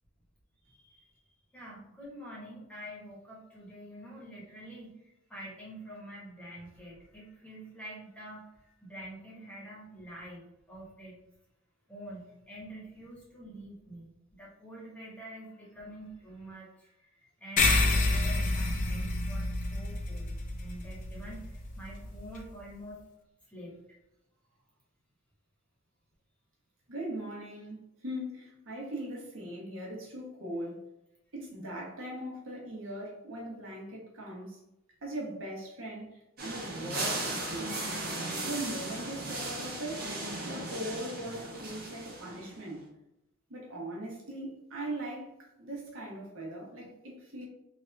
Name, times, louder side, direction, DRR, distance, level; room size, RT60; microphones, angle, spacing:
voice 1, 0.6-1.1 1.5-4.9 5.3-11.2 11.9-20.3 20.6-23.0 23.5-23.8 46.8-46.9, right 1 dB, 5° left, -5 dB, 1.1 m, -47 dB
sound 1, 17.6-22.4, left 2 dB, 35° left, 0.5 m, -29 dB
voice 2, 26.9-30.8 31.3-34.6 35.0-37.7 38.4-40.1 40.4-42.8 43.5-45.3 45.6-47.5, right 1 dB, 65° right, -3 dB, 1.1 m, -40 dB
sound 2, 36.4-42.6, right 2 dB, 45° right, 1.1 m, -37 dB
3.4 x 2.6 x 3.3 m, 0.88 s
head